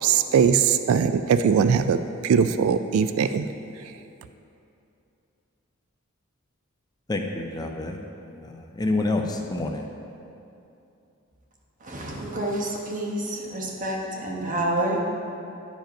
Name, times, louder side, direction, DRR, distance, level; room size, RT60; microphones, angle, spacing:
voice 1, 0.0-3.4, right 7 dB, 90° right, 11 dB, 0.3 m, -21 dB
voice 2, 7.1-8.0 8.4-9.8, left 2 dB, 20° left, 3 dB, 0.5 m, -28 dB
voice 3, 11.8-15.0, right 1 dB, 40° right, -1 dB, 1.3 m, -28 dB
10.0 x 5.2 x 5.2 m, 2.7 s
head